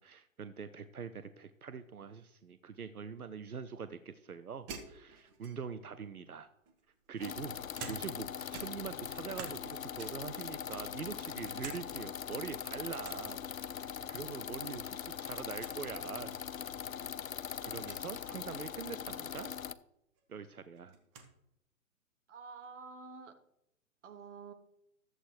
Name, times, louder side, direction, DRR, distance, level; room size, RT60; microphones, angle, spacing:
voice 1, 0.0-6.5 7.1-13.4 13.7-16.4 17.6-19.5 20.3-20.9, right 6 dB, 90° right, 12 dB, 0.7 m, -44 dB
sound 1, 4.7-5.8 6.7-8.3 8.5-9.7 10.0-10.4 10.8-11.8 12.1-12.2 13.0-13.3 14.7-15.1 15.3-15.4 15.6-15.8 16.6-16.7 17.8-18.0 19.7-19.8 20.2-21.3, right 5 dB, 20° right, 1.0 m, -49 dB
sound 2, 7.2-19.7, left 8 dB, 70° left, 0.6 m, -41 dB
voice 2, 22.3-23.3 24.0-24.5, right 5 dB, 55° right, 8 dB, 1.4 m, -48 dB
13.5 x 8.0 x 3.2 m, 0.79 s
figure-of-eight pair, 125°, 43 cm